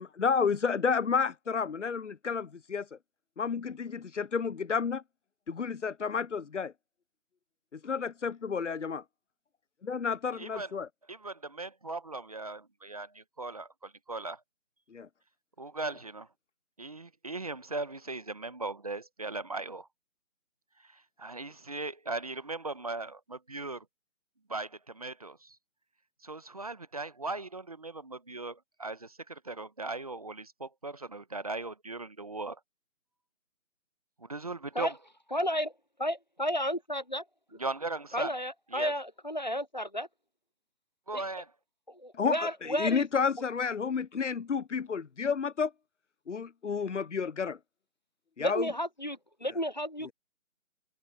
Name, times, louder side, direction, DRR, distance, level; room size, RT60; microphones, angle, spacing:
voice 1, 0.0-3.0 3.4-5.0 5.5-6.7 7.7-9.0 9.8-10.9 14.9-15.1 42.1-45.7 46.3-47.6 48.4-48.7 50.0-50.1, left 6 dB, 65° left, 0.8 m, -31 dB
voice 2, 10.4-10.7 11.1-14.4 15.6-16.3 16.8-19.9 20.9-23.8 24.5-25.6 26.2-32.6 34.2-35.0 37.5-38.4 38.7-38.9 41.1-41.5, right 3 dB, 30° right, 1.1 m, -38 dB
voice 3, 35.3-35.7 36.0-37.2 38.1-40.1 42.0-43.0 48.4-50.1, equal, 35° left, 0.6 m, -32 dB
figure-of-eight pair, 170°, 40 cm